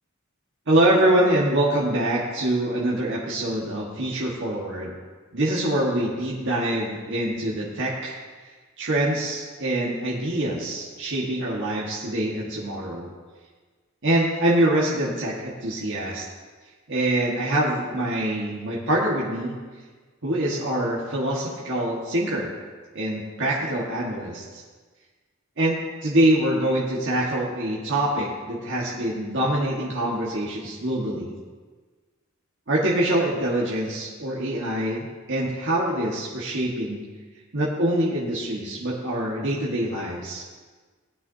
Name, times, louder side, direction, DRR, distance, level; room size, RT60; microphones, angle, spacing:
voice 1, 0.7-4.9 5.3-8.2 8.8-13.1 14.0-16.2 16.9-19.5 20.2-22.5 22.9-24.6 25.6-31.3 32.7-37.0 37.5-40.4, right 1 dB, 60° right, -5 dB, 1.6 m, -24 dB
17.5 x 9.3 x 2.8 m, 1.4 s
head